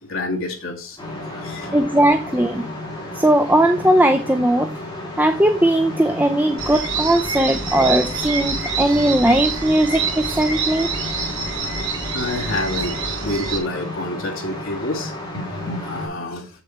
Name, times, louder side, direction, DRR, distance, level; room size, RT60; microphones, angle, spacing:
voice 1, 0.1-1.0 1.3-1.8 7.3-7.5 12.1-16.5, left 2 dB, 65° left, 2.1 m, -28 dB
sound 1, 1.0-16.1, left 1 dB, 20° left, 3.4 m, -33 dB
voice 2, 1.7-2.6 3.1-4.7 5.2-10.9, right 1 dB, 10° right, 0.4 m, -18 dB
sound 2, 6.6-13.6, right 5 dB, 60° right, 2.3 m, -27 dB
7.6 x 6.7 x 4.4 m
head